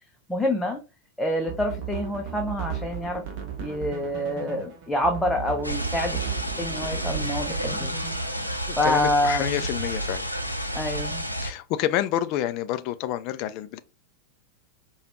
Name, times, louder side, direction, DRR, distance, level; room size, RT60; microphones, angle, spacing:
voice 1, 0.3-0.8 1.2-3.2 3.6-6.3 6.6-7.9 8.4-9.6 10.7-11.2, left 1 dB, 5° left, 0.6 m, -27 dB
sound 1, 1.4-8.5, right 8 dB, 40° right, 1.0 m, -36 dB
sound 2, 5.6-11.5, equal, 90° right, 0.6 m, -30 dB
voice 2, 8.7-10.3 11.4-13.8, left 12 dB, 40° left, 0.3 m, -28 dB
4.9 x 2.3 x 3.0 m
figure-of-eight pair, 90°, 0 cm